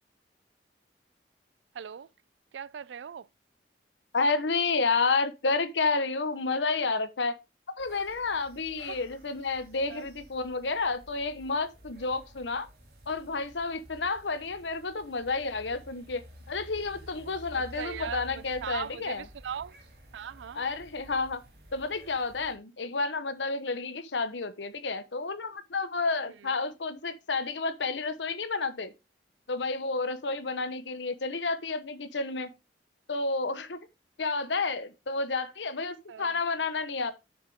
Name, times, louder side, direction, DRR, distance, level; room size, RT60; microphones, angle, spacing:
voice 1, 1.7-2.1 2.5-3.3 8.9-9.0 9.9-10.0 17.6-19.7 20.1-20.6 36.1-36.3, right 8 dB, 85° right, 0.4 m, -39 dB
voice 2, 4.1-7.4 7.8-12.7 13.1-16.2 16.5-19.3 20.5-21.4 21.7-28.9 29.5-32.5 33.1-33.8 34.2-37.1, left 3 dB, 90° left, 0.9 m, -30 dB
sound 1, 7.8-22.6, equal, 60° right, 2.3 m, -52 dB
7.2 x 6.6 x 3.5 m
head